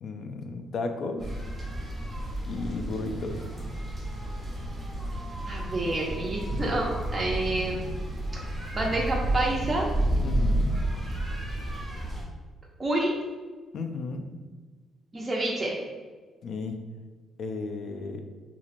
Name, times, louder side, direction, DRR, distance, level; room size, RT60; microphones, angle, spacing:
voice 1, 0.0-1.4 2.5-3.4 10.2-10.8 13.7-14.3 16.4-16.8 17.4-18.2, left 3 dB, 65° left, 6 dB, 0.3 m, -34 dB
sound 1, 1.2-12.2, right 1 dB, 10° right, 1.0 m, -31 dB
voice 2, 5.5-7.8 8.3-9.9 12.8-13.2 15.1-15.8, right 2 dB, 25° right, -3 dB, 0.5 m, -28 dB
3.0 x 2.4 x 2.5 m, 1.4 s
cardioid pair, 90°, 0 cm